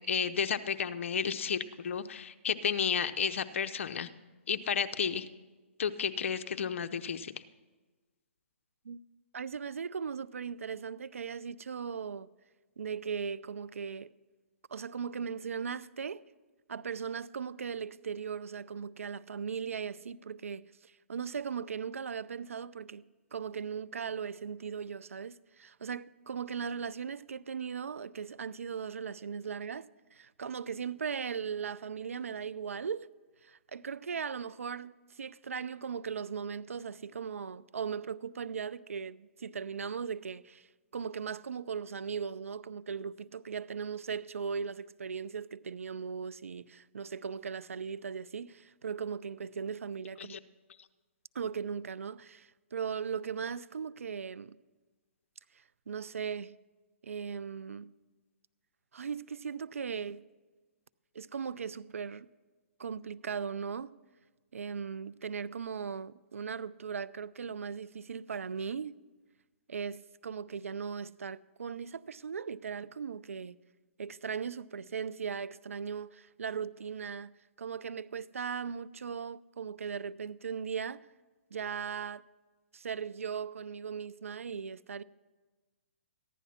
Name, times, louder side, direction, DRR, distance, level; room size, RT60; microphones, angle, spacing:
voice 1, 0.1-4.1 4.5-5.3 5.8-7.3 50.2-50.4, left 7 dB, 65° left, 0.7 m, -32 dB
voice 2, 9.3-12.3 12.8-14.1 14.7-16.2 16.7-23.0 23.3-29.9 30.1-33.1 33.4-40.7 40.9-50.4 51.3-54.6 55.9-56.5 57.0-57.9 58.9-60.2 61.1-62.3 62.8-63.9 64.5-68.9 69.7-73.6 74.0-77.3 77.6-81.0 81.5-82.2 82.7-85.0, right 6 dB, 85° right, 0.4 m, -38 dB
14.5 x 11.0 x 4.2 m
hypercardioid pair, 140°, 7 cm